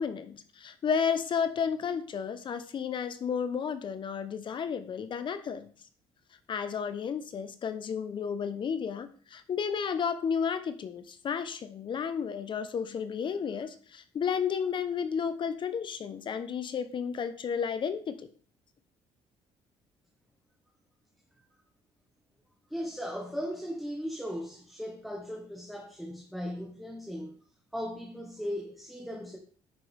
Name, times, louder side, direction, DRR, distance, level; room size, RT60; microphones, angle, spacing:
voice 1, 0.0-5.7 6.5-18.3, left 7 dB, 45° left, 1.0 m, -32 dB
voice 2, 22.7-27.3 27.7-29.4, equal, ahead, 1.5 m, -37 dB
9.9 x 6.2 x 3.6 m
cardioid pair, 95°, 11 cm